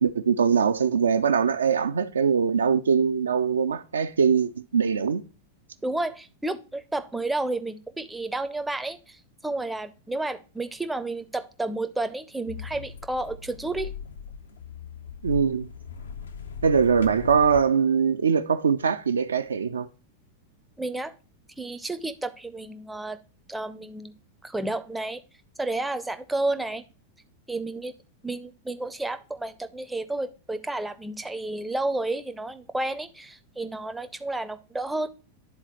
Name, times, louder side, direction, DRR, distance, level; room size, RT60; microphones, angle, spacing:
voice 1, 0.0-5.2 15.2-15.7 16.6-19.9, right 6 dB, 70° right, 0.3 m, -22 dB
voice 2, 5.8-13.9 20.8-21.1 21.6-23.2 23.5-24.1 24.4-25.2 25.6-26.8 27.5-27.9 28.2-35.1, right 2 dB, 5° right, 0.5 m, -31 dB
sound 1, 12.5-17.6, left 6 dB, 70° left, 0.5 m, -39 dB
10.5 x 4.0 x 3.0 m
figure-of-eight pair, 90°, 0 cm